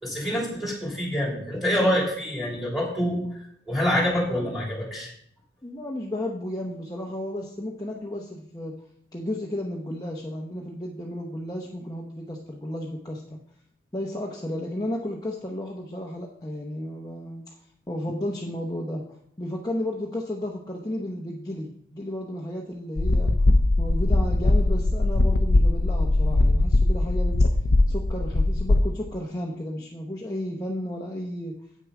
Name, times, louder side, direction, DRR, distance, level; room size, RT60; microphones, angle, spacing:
voice 1, 0.0-3.3 3.7-5.1, equal, ahead, -3 dB, 2.9 m, -26 dB
voice 2, 5.6-8.8 9.1-13.4 13.9-17.4 17.9-19.0 19.4-23.3 23.8-27.4 27.9-31.6, left 1 dB, 20° left, -1 dB, 0.8 m, -33 dB
sound 1, 23.0-28.8, left 2 dB, 60° left, 0.6 m, -20 dB
8.6 x 6.6 x 4.8 m, 0.68 s
head